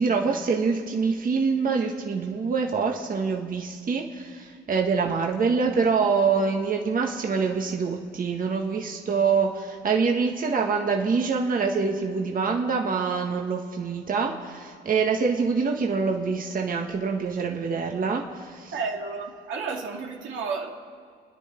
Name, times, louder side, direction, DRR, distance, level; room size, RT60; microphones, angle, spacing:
voice 1, 0.0-18.7, right 5 dB, 45° right, 2 dB, 1.5 m, -25 dB
voice 2, 18.7-20.7, right 4 dB, 80° right, 1 dB, 2.2 m, -31 dB
29.5 x 10.5 x 4.5 m, 2.1 s
cardioid pair, 90°, 20 cm